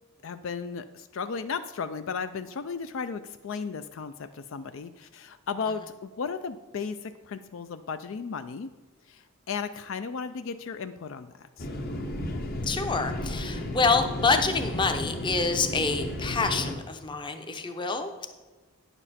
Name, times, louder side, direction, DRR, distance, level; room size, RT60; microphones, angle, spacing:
voice 1, 0.2-8.7 9.1-11.7, left 5 dB, 60° left, 10 dB, 0.4 m, -35 dB
sound 1, 11.6-16.7, left 1 dB, 45° left, 0.9 m, -33 dB
voice 2, 12.6-18.3, left 4 dB, 20° left, 6 dB, 0.7 m, -27 dB
9.8 x 7.1 x 4.2 m, 1.3 s
head